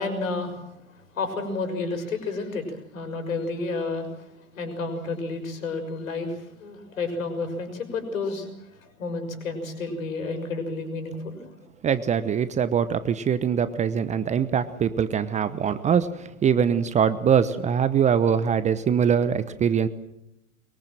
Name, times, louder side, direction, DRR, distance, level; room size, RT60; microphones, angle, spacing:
voice 1, 0.0-4.3 4.5-11.5, left 3 dB, 70° left, 7 dB, 6.3 m, -31 dB
voice 2, 11.8-19.9, right 7 dB, 15° right, 14 dB, 0.9 m, -23 dB
23.5 x 23.0 x 7.6 m, 0.85 s
figure-of-eight pair, 105°, 42 cm